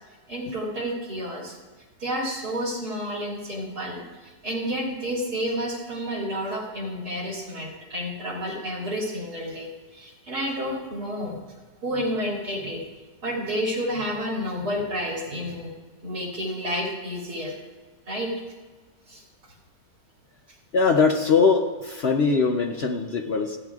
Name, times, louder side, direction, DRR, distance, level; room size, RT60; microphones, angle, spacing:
voice 1, 0.3-1.5 2.0-11.4 11.8-12.8 13.2-15.7 16.0-17.5 18.1-18.3 19.1-19.2, equal, 80° right, -2 dB, 3.2 m, -30 dB
voice 2, 20.7-23.6, left 4 dB, 55° left, 4 dB, 0.8 m, -21 dB
27.0 x 9.0 x 2.4 m, 1.3 s
omnidirectional pair, 1.7 m